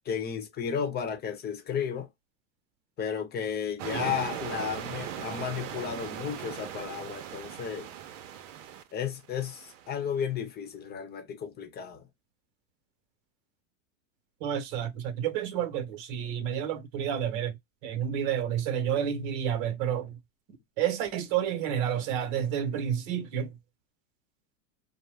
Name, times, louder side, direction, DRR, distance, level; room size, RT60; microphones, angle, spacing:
voice 1, 0.0-2.1 3.0-7.9 8.9-12.1, left 7 dB, 25° left, 0.8 m, -33 dB
sound 1, 3.8-10.0, right 10 dB, 75° right, 0.7 m, -39 dB
voice 2, 14.4-17.5 17.8-20.1 20.8-23.5, right 9 dB, 55° right, 1.0 m, -30 dB
2.6 x 2.1 x 3.2 m
supercardioid pair, 125°, 38 cm